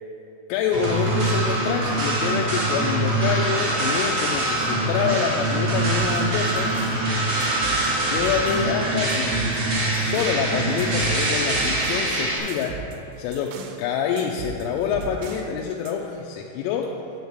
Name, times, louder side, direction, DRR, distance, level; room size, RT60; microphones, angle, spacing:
voice 1, 0.5-6.7 8.1-9.3 9.9-12.8 13.2-17.0, left 7 dB, 90° left, 1 dB, 3.2 m, -26 dB
sound 1, 0.7-12.4, right 1 dB, 45° right, 2.4 m, -23 dB
sound 2, 6.0-7.1 7.4-8.8 9.1-10.5 10.8-13.8 14.2-15.5 15.9-16.0, right 6 dB, 90° right, 3.3 m, -38 dB
10.5 x 4.7 x 8.0 m, 2.9 s
omnidirectional pair, 5.6 m